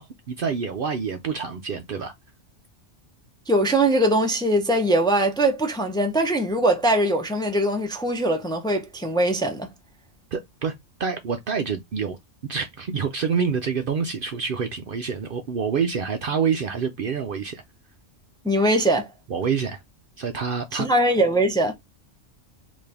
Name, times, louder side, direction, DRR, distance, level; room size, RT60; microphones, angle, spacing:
voice 1, 0.0-2.1 10.3-17.6 19.3-19.8 20.2-20.9, right 6 dB, 55° right, 0.6 m, -27 dB
voice 2, 3.5-9.7 18.4-19.1 20.7-21.7, right 1 dB, 5° left, 0.6 m, -21 dB
4.1 x 2.7 x 3.3 m
omnidirectional pair, 1.2 m